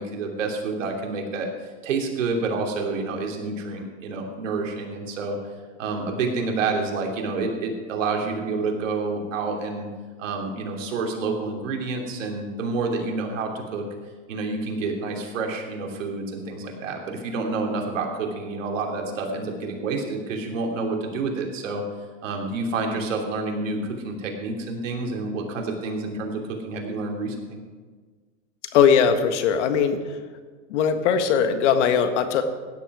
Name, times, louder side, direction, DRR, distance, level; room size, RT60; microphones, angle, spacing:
voice 1, 0.0-1.5 1.8-5.5 5.8-9.9 10.2-13.8 14.3-21.8 22.2-27.6, right 3 dB, 80° right, 1 dB, 3.0 m, -28 dB
voice 2, 28.7-30.0 30.7-32.4, left 7 dB, 65° left, 8 dB, 1.6 m, -20 dB
16.0 x 10.5 x 4.9 m, 1.5 s
hypercardioid pair, 130°, 38 cm